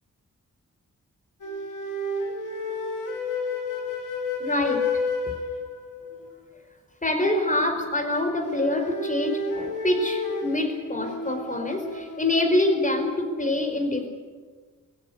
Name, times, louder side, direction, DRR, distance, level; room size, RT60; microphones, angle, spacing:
sound 1, 1.4-6.2 8.1-13.2, left 3 dB, 75° left, 3.8 m, -31 dB
voice 1, 4.4-4.8 7.0-14.1, left 1 dB, 25° left, 5 dB, 4.9 m, -25 dB
22.5 x 16.0 x 9.5 m, 1.4 s
wide cardioid pair, 90°, 32 cm